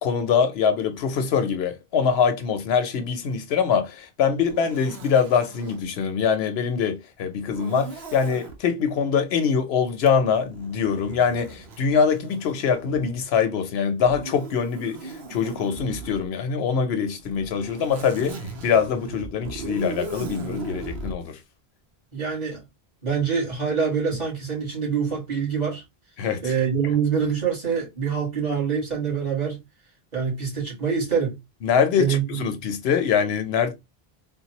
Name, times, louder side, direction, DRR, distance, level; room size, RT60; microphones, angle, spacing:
voice 1, 0.0-21.4 26.2-26.5 31.6-33.7, left 6 dB, 80° left, 0.9 m, -23 dB
Zipper (clothing), 4.4-5.9 7.5-8.6 10.0-13.2 14.0-16.3 17.2-21.2, right 3 dB, 85° right, 1.0 m, -38 dB
voice 2, 22.1-22.6 23.0-25.8 26.4-29.6 30.1-31.4 32.0-32.4, right 6 dB, 45° right, 1.8 m, -25 dB
3.8 x 2.2 x 2.9 m
omnidirectional pair, 1.0 m